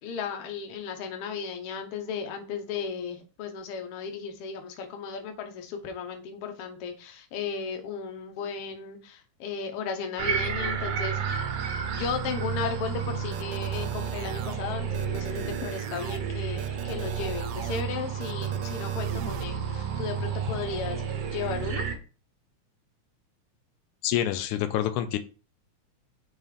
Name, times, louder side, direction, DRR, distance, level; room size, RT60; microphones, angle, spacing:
voice 1, 0.0-11.4 11.9-21.8, left 6 dB, 65° left, 5 dB, 1.6 m, -35 dB
sound 1, 10.2-22.0, right 7 dB, 65° right, 1.7 m, -31 dB
sound 2, 13.3-14.6 14.9-16.2 16.6-17.8 18.2-19.4, right 12 dB, 90° right, 1.4 m, -41 dB
voice 2, 24.0-25.2, left 11 dB, 85° left, 9 dB, 2.0 m, -27 dB
5.4 x 3.6 x 5.0 m, 0.36 s
omnidirectional pair, 3.5 m